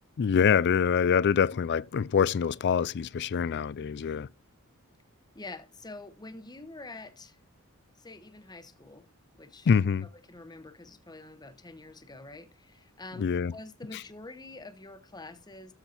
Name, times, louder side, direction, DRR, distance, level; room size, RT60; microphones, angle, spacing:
voice 1, 0.2-4.3 9.7-10.1 13.2-13.5, left 7 dB, 50° left, 0.4 m, -25 dB
voice 2, 5.3-7.4 8.0-9.1 9.4-9.7 10.0-15.7, left 2 dB, 20° left, 1.0 m, -46 dB
13.0 x 4.5 x 4.4 m
head